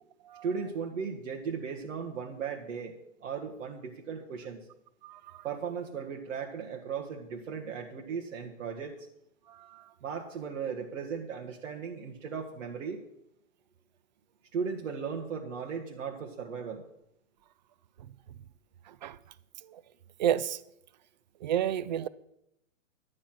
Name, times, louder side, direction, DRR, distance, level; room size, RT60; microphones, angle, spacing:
voice 1, 0.4-3.0 3.2-4.7 5.4-9.0 10.0-13.0 14.5-16.8, right 6 dB, 70° right, 1.8 m, -36 dB
voice 2, 5.0-5.4 9.5-9.8 18.9-19.2 19.6-19.8 20.2-20.6 21.4-22.1, right 10 dB, 35° right, 0.5 m, -31 dB
11.5 x 9.6 x 6.0 m
hypercardioid pair, 150°, 39 cm